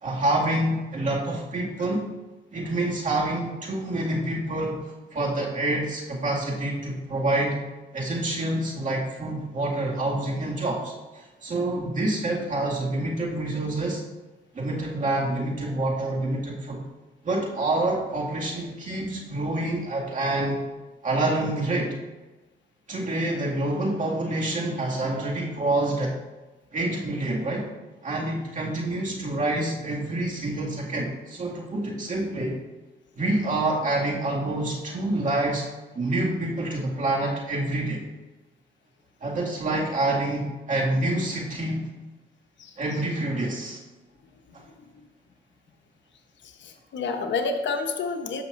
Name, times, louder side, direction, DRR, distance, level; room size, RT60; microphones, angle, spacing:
voice 1, 0.0-2.0 2.5-4.8 5.1-7.6 7.9-14.0 14.5-16.8 17.2-20.6 21.0-22.0 22.9-26.1 26.7-27.7 28.0-32.6 33.2-35.6 35.9-38.1 39.2-41.9 42.8-43.8 44.5-44.6, right 2 dB, 40° right, -3 dB, 2.2 m, -27 dB
voice 2, 46.6-48.4, left 4 dB, 65° left, 5 dB, 1.0 m, -29 dB
13.5 x 5.9 x 2.6 m, 1.2 s
cardioid pair, 90°, 20 cm